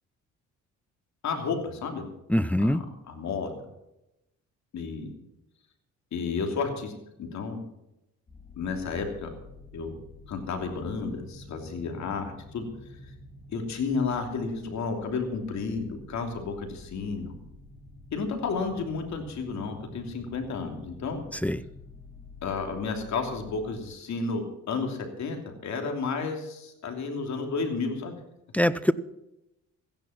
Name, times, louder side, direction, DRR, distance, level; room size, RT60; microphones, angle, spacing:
voice 1, 1.2-2.1 2.6-3.6 4.7-5.1 6.1-6.9 7.2-7.6 8.6-9.3 9.7-10.0 10.3-12.7 13.5-17.3 18.1-21.2 22.4-28.1, left 4 dB, 65° left, 4 dB, 3.1 m, -32 dB
voice 2, 2.3-2.8 21.3-21.6 28.5-28.9, left 1 dB, 5° left, 15 dB, 0.5 m, -23 dB
sound 1, 8.3-23.8, left 3 dB, 30° left, 6.8 m, -49 dB
15.0 x 10.5 x 5.9 m, 0.88 s
cardioid pair, 90°, 30 cm